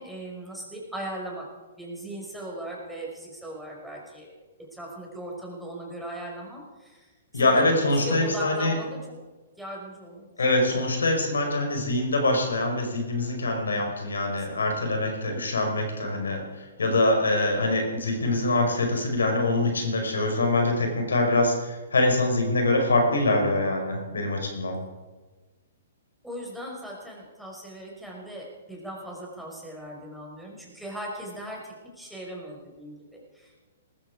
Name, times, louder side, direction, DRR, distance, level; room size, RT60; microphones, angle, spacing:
voice 1, 0.0-1.4 1.8-4.3 4.7-9.0 9.6-10.3 10.7-10.8 14.3-14.8 26.2-33.6, right 1 dB, ahead, -3 dB, 5.4 m, -38 dB
voice 2, 7.3-8.7 10.4-16.4 16.8-24.8, left 2 dB, 80° left, 3 dB, 5.1 m, -24 dB
19.5 x 14.5 x 4.9 m, 1.3 s
hypercardioid pair, 125°, 0 cm